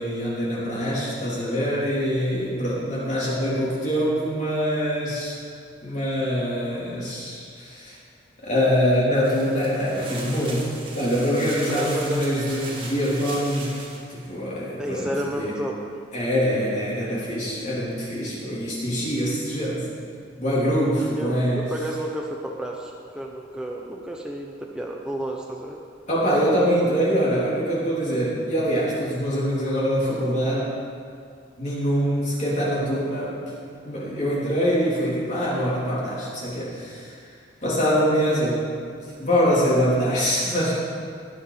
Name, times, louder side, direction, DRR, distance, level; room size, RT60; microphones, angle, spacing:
voice 1, 0.0-5.3 5.8-8.0 8.4-13.8 14.1-15.6 16.1-19.9 20.4-21.7 26.1-30.7 31.6-33.5 33.8-37.2 37.6-38.7 39.2-40.7, equal, 40° left, -7 dB, 3.6 m, -24 dB
sound 1, 9.2-14.1, right 2 dB, 25° right, 1.9 m, -38 dB
voice 2, 11.7-12.3 14.8-15.8 20.9-25.8, right 1 dB, 5° right, -1 dB, 0.7 m, -31 dB
20.0 x 7.2 x 5.0 m, 2.3 s
head